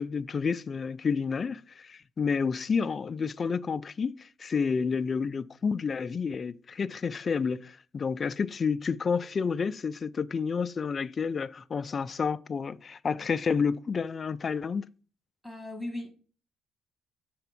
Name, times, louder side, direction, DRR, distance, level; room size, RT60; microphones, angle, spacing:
voice 1, 0.0-14.9, left 5 dB, 35° left, 0.3 m, -30 dB
voice 2, 15.4-16.1, left 1 dB, 10° right, 1.7 m, -37 dB
6.8 x 3.5 x 5.9 m
cardioid pair, 110°, 0 cm